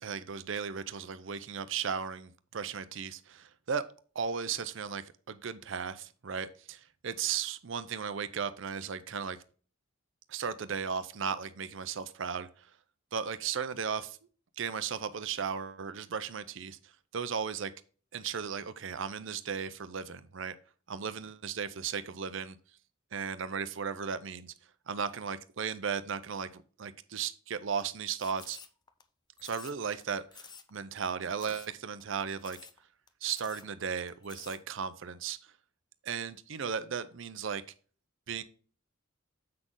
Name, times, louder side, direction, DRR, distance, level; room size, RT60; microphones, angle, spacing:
voice 1, 0.0-3.8 4.1-9.4 10.3-12.7 13.1-14.2 14.6-16.8 17.1-17.7 18.1-20.6 20.9-22.6 23.1-24.5 24.9-28.6 29.4-32.6 33.2-35.4 36.0-37.6 38.3-38.4, right 6 dB, 65° right, 12 dB, 0.6 m, -36 dB
sound 1, 28.2-29.0 29.4-30.0 30.3-30.7 31.0-31.1 31.4-31.7 32.0-32.1 32.4-32.8 33.1-33.2 33.3-33.7 34.1-34.6, left 6 dB, 20° left, 0.6 m, -50 dB
7.6 x 6.2 x 3.7 m, 0.40 s
head